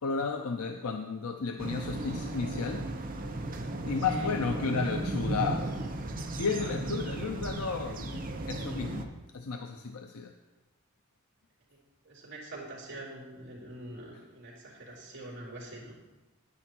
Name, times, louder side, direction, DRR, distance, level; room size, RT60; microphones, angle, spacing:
voice 1, 0.0-2.9 3.8-5.7 6.4-8.2 8.5-10.3 14.1-14.2, left 5 dB, 85° left, 5 dB, 0.6 m, -33 dB
sound 1, 1.6-9.0, right 2 dB, 40° right, 0.8 m, -35 dB
voice 2, 6.3-6.8 12.0-15.9, right 2 dB, 55° right, -5 dB, 3.4 m, -45 dB
10.0 x 9.8 x 4.5 m, 1.1 s
head